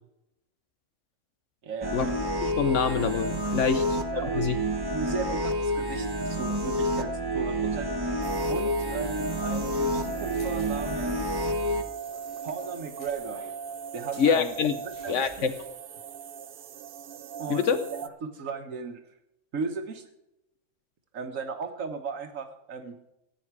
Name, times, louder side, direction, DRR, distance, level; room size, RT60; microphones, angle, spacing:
voice 1, 1.6-2.0 3.6-3.7 4.1-4.5 4.9-7.9 8.5-11.5 12.4-13.4 13.9-15.5 17.4-17.6 17.9-19.0 19.5-20.0 21.1-22.9, right 5 dB, 85° right, 6 dB, 1.6 m, -36 dB
sound 1, 1.8-11.8, equal, 20° right, 0.9 m, -29 dB
voice 2, 2.4-4.0 4.3-4.6 14.2-14.8 15.1-15.5 17.5-17.8, left 6 dB, 70° left, 10 dB, 1.1 m, -25 dB
sound 2, 8.2-18.1, right 7 dB, 55° right, 0.7 m, -40 dB
sound 3, 8.4-15.7, equal, 90° left, 6.2 m, -54 dB
14.5 x 9.2 x 4.8 m, 0.87 s
omnidirectional pair, 1.3 m